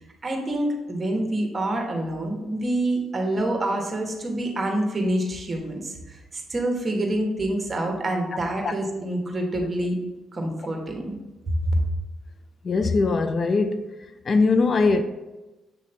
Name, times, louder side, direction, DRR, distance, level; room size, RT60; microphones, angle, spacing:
voice 1, 0.2-10.0 10.3-11.2 11.5-11.8, right 1 dB, 25° right, 1.4 m, -26 dB
voice 2, 12.6-13.9 14.3-15.0, left 4 dB, 45° left, 0.4 m, -21 dB
7.7 x 3.1 x 4.2 m
cardioid pair, 90°, 0 cm